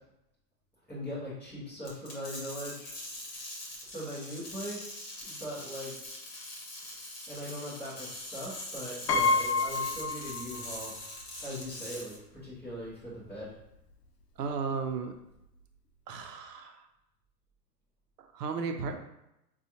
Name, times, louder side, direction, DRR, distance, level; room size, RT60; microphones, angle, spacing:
voice 1, 0.9-3.0 3.8-5.9 7.3-10.9 11.4-13.5, equal, 5° left, -12 dB, 0.6 m, -40 dB
sound 1, 1.8-12.2, left 1 dB, 35° left, 1.1 m, -43 dB
Piano, 9.1-10.9 11.2-11.3 12.5-12.6 12.9-13.1, left 3 dB, 75° left, 0.7 m, -29 dB
voice 2, 14.4-15.2 16.1-16.9 18.2-19.0, right 5 dB, 75° right, 6 dB, 0.7 m, -34 dB
4.0 x 2.4 x 2.8 m, 0.86 s
hypercardioid pair, 155°, 49 cm